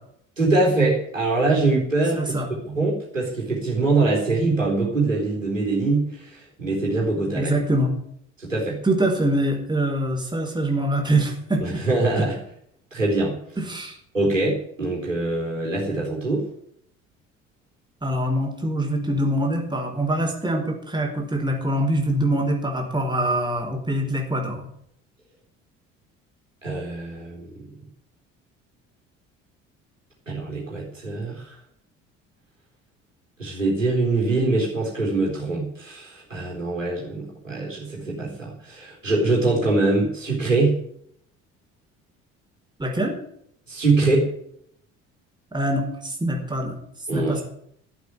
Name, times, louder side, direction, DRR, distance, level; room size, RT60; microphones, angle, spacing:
voice 1, 0.4-7.5 8.4-8.8 11.6-12.4 12.9-13.4 14.1-16.4 26.6-27.7 30.3-31.4 33.4-40.8 43.7-44.3 47.1-47.4, right 3 dB, 85° right, -3 dB, 4.0 m, -23 dB
voice 2, 2.1-2.5 7.4-7.9 8.8-11.8 12.2-12.3 13.6-14.0 18.0-24.7 42.8-43.1 45.5-46.7 47.1-47.4, right 1 dB, 10° right, 1 dB, 4.8 m, -24 dB
13.0 x 8.3 x 9.5 m, 0.68 s
figure-of-eight pair, 55°, 38 cm